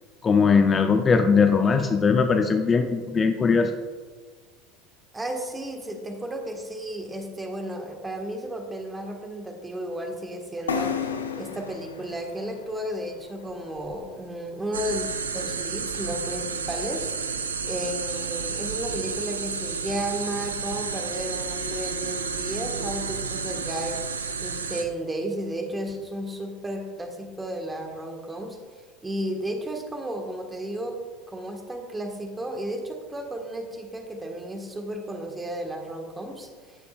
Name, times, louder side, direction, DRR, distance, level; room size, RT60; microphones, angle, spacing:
voice 1, 0.2-3.7, left 5 dB, 30° left, 6 dB, 0.6 m, -20 dB
voice 2, 5.1-11.0 11.4-15.1 15.3-17.2 17.6-24.0 24.4-28.6 29.0-31.0 31.3-36.8, right 1 dB, 15° right, 3 dB, 1.5 m, -33 dB
sound 1, 10.7-14.3, left 6 dB, 85° left, 0.6 m, -33 dB
sound 2, 14.7-24.8, right 5 dB, 85° right, 0.5 m, -31 dB
14.5 x 6.8 x 2.4 m, 1.5 s
hypercardioid pair, 75°, 0 cm